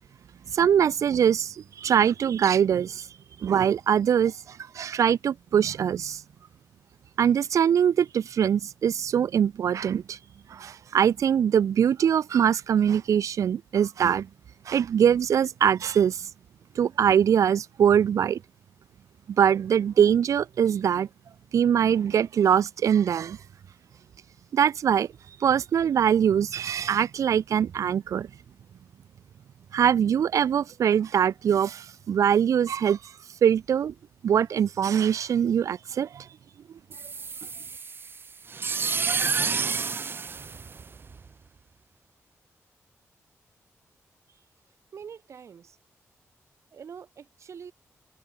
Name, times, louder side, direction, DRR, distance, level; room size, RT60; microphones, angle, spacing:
voice 1, 0.5-3.1 3.4-6.2 7.2-10.2 10.5-14.3 14.7-16.3 16.8-18.4 19.3-21.1 21.5-23.4 24.5-25.1 25.4-28.3 29.7-33.0 33.4-33.9 34.2-36.3, right 8 dB, 80° right, 0.9 m, -23 dB
sound 1, 36.9-41.3, right 5 dB, 45° right, 2.0 m, -30 dB
voice 2, 44.9-45.8 46.7-47.7, right 7 dB, 65° right, 2.4 m, -44 dB
wide cardioid pair, 135°, 5 cm